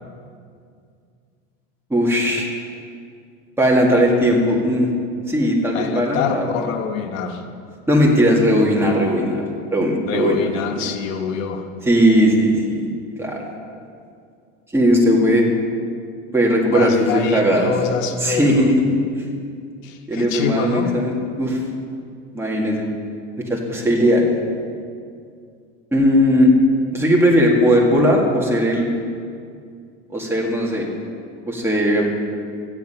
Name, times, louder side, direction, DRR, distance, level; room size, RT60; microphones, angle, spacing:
voice 1, 1.9-2.5 3.6-4.9 5.3-6.5 7.9-9.4 9.7-10.4 10.7-10.8 11.8-12.9 13.2-13.4 14.7-15.5 16.3-17.7 18.2-18.9 19.1-19.2 20.1-21.6 22.3-22.9 23.4-24.3 25.9-26.5 26.9-28.9 30.1-30.9 31.5-32.1, equal, 5° right, -3 dB, 2.0 m, -17 dB
voice 2, 5.7-7.5 10.1-11.7 16.7-18.7 19.8-21.0, left 6 dB, 90° left, 5 dB, 1.2 m, -25 dB
13.5 x 9.7 x 5.6 m, 2.3 s
supercardioid pair, 135°, 38 cm